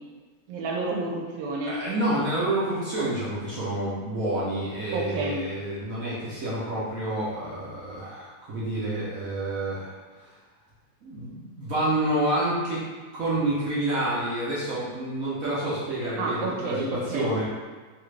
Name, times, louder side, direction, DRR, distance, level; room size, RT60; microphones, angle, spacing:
voice 1, 0.5-1.8 4.9-5.4 16.2-17.3, right 2 dB, 85° right, -1 dB, 1.3 m, -30 dB
voice 2, 1.7-10.3 11.0-12.8 13.1-17.5, right 1 dB, 60° right, -8 dB, 0.9 m, -28 dB
3.3 x 2.4 x 3.1 m, 1.4 s
omnidirectional pair, 2.0 m